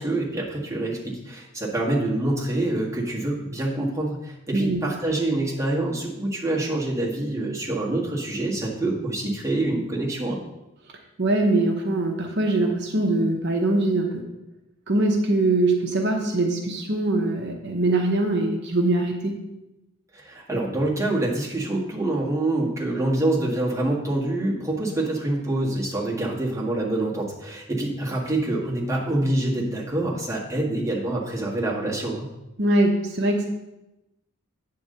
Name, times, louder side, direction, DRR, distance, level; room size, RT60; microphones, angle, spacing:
voice 1, 0.0-10.4 20.1-32.3, right 2 dB, 15° right, -4 dB, 1.6 m, -26 dB
voice 2, 11.2-14.2 14.9-19.4 32.6-33.5, right 2 dB, 55° right, 2 dB, 0.9 m, -22 dB
8.6 x 3.8 x 6.6 m, 0.96 s
head